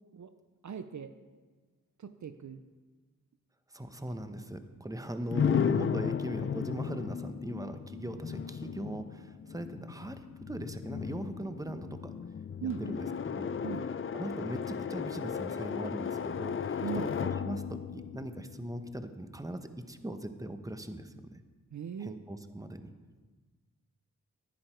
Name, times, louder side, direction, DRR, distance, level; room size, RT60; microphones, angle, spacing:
voice 1, 0.6-1.1 2.0-2.6 5.3-5.7 12.6-12.8 13.6-13.9 16.8-17.1 21.7-22.1, right 7 dB, 60° right, 10 dB, 0.6 m, -39 dB
voice 2, 3.7-12.1 12.8-13.5 14.1-21.1 22.0-22.9, right 1 dB, 10° right, 8 dB, 1.0 m, -40 dB
sound 1, 5.3-19.1, left 7 dB, 40° left, 0.5 m, -35 dB
11.0 x 10.5 x 4.4 m, 1.3 s
cardioid pair, 45°, 34 cm